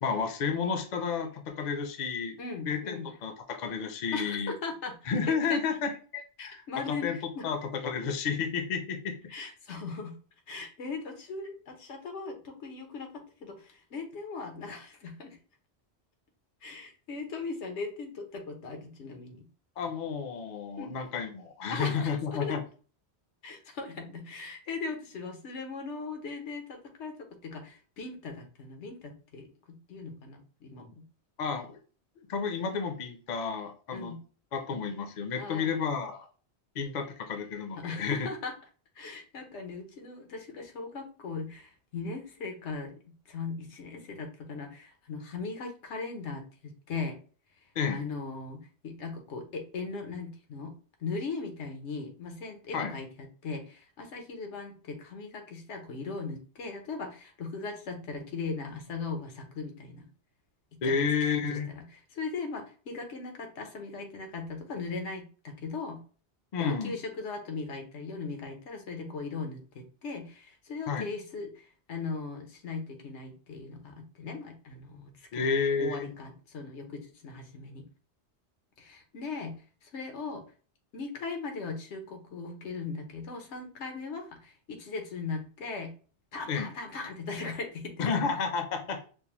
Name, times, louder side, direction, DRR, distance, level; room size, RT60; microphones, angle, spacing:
voice 1, 0.0-4.5 5.1-6.6 6.9-7.2 7.4-9.2 19.8-22.6 31.4-31.8 32.3-34.2 34.5-36.3 36.8-38.3 47.8-48.0 52.7-52.9 60.8-61.7 66.5-67.0 70.9-71.1 75.3-76.0 86.5-86.7 88.0-89.1, left 5 dB, 50° left, 6 dB, 0.6 m, -31 dB
voice 2, 2.4-3.1 4.1-5.2 5.5-5.6 6.4-7.5 9.3-10.2 10.5-15.4 16.6-19.5 20.8-21.0 21.7-22.1 22.4-22.6 23.4-27.2 27.4-31.0 33.9-34.2 35.4-35.7 37.8-38.5 38.9-42.9 43.3-47.2 47.9-50.7 51.0-60.1 60.7-61.0 61.3-61.8 62.1-66.0 66.6-77.9 78.8-80.4 80.9-85.9 86.3-88.3, left 4 dB, 90° left, 4 dB, 1.1 m, -39 dB
5.3 x 2.0 x 2.9 m, 0.39 s
omnidirectional pair, 1.1 m